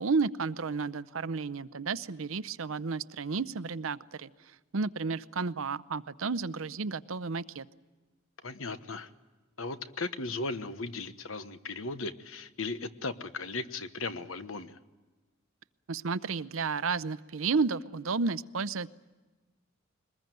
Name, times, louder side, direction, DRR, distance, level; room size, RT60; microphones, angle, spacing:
voice 1, 0.0-4.3 4.7-7.7 15.9-18.9, right 4 dB, 75° right, 16 dB, 0.7 m, -32 dB
voice 2, 8.4-9.1 9.6-14.8, left 3 dB, 70° left, 11 dB, 1.2 m, -37 dB
22.5 x 20.5 x 9.2 m, 1.2 s
head